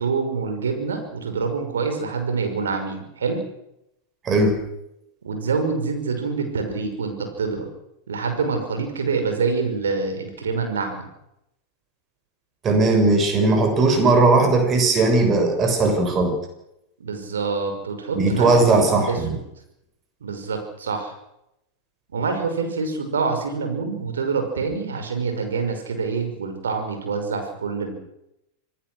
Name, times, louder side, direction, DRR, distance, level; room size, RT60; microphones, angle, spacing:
voice 1, 0.0-3.4 5.2-7.7 8.1-11.1 17.0-19.4 20.2-21.1 22.1-27.9, right 4 dB, 65° right, 5 dB, 5.8 m, -26 dB
voice 2, 4.2-4.6 12.6-16.3 18.1-19.4, right 3 dB, 25° right, 5 dB, 6.5 m, -18 dB
26.5 x 19.5 x 6.5 m, 0.83 s
figure-of-eight pair, 90°, 0 cm